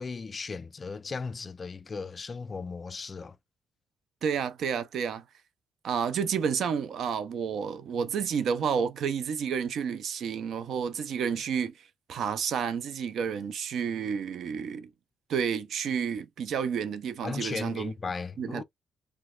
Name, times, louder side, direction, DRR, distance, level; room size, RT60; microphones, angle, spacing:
voice 1, 0.0-3.4 17.2-18.6, left 4 dB, 35° left, 0.3 m, -36 dB
voice 2, 4.2-5.2 5.8-11.7 12.1-14.9 15.3-17.9 18.4-18.6, right 7 dB, 70° right, 0.6 m, -30 dB
3.4 x 3.0 x 2.3 m
cardioid pair, 90°, 0 cm